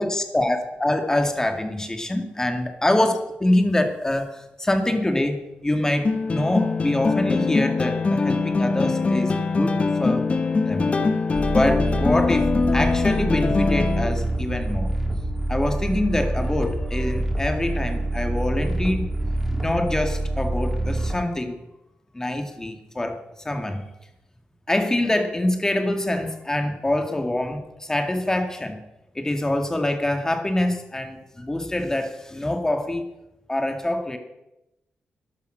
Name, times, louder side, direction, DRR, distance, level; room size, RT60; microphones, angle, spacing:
voice 1, 0.0-9.7 10.0-10.3 10.7-10.9 11.4-14.9 15.5-19.1 19.5-21.6 22.1-23.2 23.4-23.8 24.7-28.8 29.1-33.0 33.5-34.2, left 1 dB, 15° left, 5 dB, 2.2 m, -25 dB
sound 1, 6.0-14.0, left 4 dB, 35° left, 1.4 m, -22 dB
sound 2, 11.3-21.2, right 1 dB, 5° right, 3.2 m, -26 dB
13.0 x 11.0 x 6.4 m, 0.91 s
cardioid pair, 95°, 4 cm